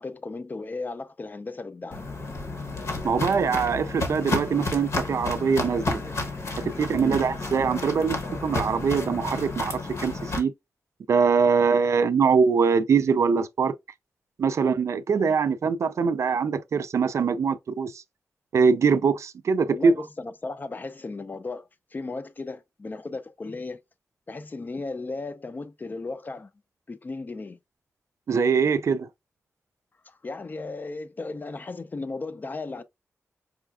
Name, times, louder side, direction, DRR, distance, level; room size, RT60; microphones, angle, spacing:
voice 1, 0.0-2.0 7.0-7.2 19.7-23.8 24.3-26.5 26.9-27.6 30.1-32.8, left 3 dB, 35° left, 0.4 m, -35 dB
Walk footsteps, 1.9-10.4, left 2 dB, 65° left, 1.0 m, -31 dB
voice 2, 3.0-6.0 6.6-10.5 11.1-13.7 14.4-18.0 18.5-19.9 28.3-29.1, right 5 dB, 65° right, 0.3 m, -23 dB
4.8 x 2.3 x 2.3 m
wide cardioid pair, 90°, 5 cm